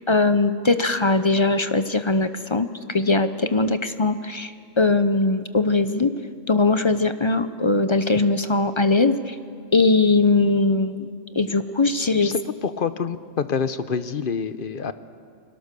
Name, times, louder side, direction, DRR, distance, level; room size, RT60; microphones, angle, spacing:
voice 1, 0.1-6.1 6.5-9.4 9.7-12.3, left 3 dB, 30° left, 11 dB, 0.7 m, -20 dB
voice 2, 12.2-14.9, left 6 dB, 50° left, 12 dB, 0.9 m, -27 dB
29.5 x 21.5 x 6.8 m, 2.3 s
omnidirectional pair, 1.3 m